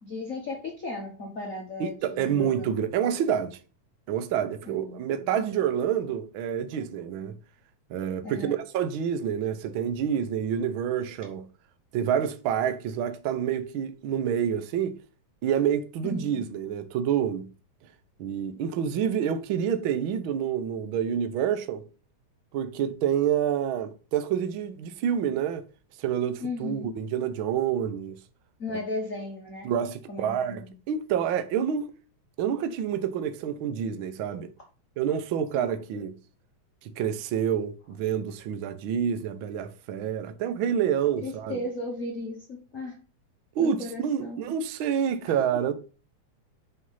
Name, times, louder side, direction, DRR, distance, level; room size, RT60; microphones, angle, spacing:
voice 1, 0.0-2.8 4.7-5.4 8.2-8.6 16.0-16.5 26.4-26.9 28.6-29.7 30.1-30.7 35.5-35.7 41.2-43.0 43.6-44.4 45.3-45.4, left 2 dB, 40° left, 1.3 m, -36 dB
voice 2, 1.8-3.6 4.1-7.4 7.9-11.5 11.9-15.0 15.4-17.5 18.2-21.8 22.5-25.6 26.0-28.2 29.6-31.9 32.4-34.5 35.0-36.1 36.8-41.6 43.5-45.7, right 8 dB, 90° right, 1.1 m, -28 dB
6.1 x 5.6 x 5.5 m
omnidirectional pair, 3.4 m